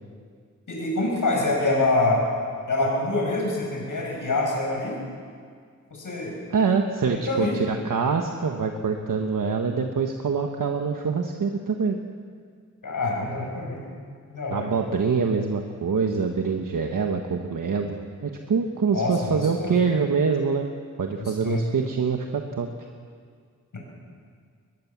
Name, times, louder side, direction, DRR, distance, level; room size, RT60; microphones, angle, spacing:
voice 1, 0.7-2.2 2.7-5.0 5.9-6.3 7.1-7.6 12.8-13.8 14.3-14.7 18.9-19.8 21.2-21.7, left 2 dB, 80° left, -2 dB, 7.4 m, -25 dB
voice 2, 6.5-12.0 14.5-20.7 21.0-22.7, right 5 dB, 80° right, 3 dB, 1.5 m, -25 dB
22.0 x 21.5 x 7.4 m, 2.1 s
wide cardioid pair, 90°, 31 cm